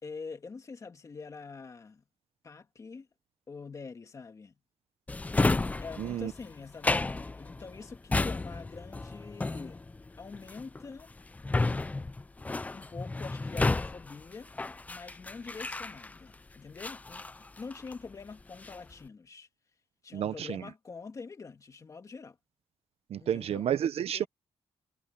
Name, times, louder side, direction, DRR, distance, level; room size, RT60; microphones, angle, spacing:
voice 1, 0.0-2.0 2.4-3.1 3.5-4.6 5.8-9.8 10.2-11.1 12.7-14.5 14.9-19.5 20.0-22.4 23.2-23.7 24.1-24.3, left 4 dB, 30° left, 2.5 m, -45 dB
Drawer open or close, 5.1-16.3 16.8-18.1 18.4-18.9, left 3 dB, 15° left, 0.5 m, -32 dB
voice 2, 6.0-6.3 20.1-20.6 23.1-24.3, right 10 dB, 60° right, 0.8 m, -30 dB
wide cardioid pair, 160°, 11 cm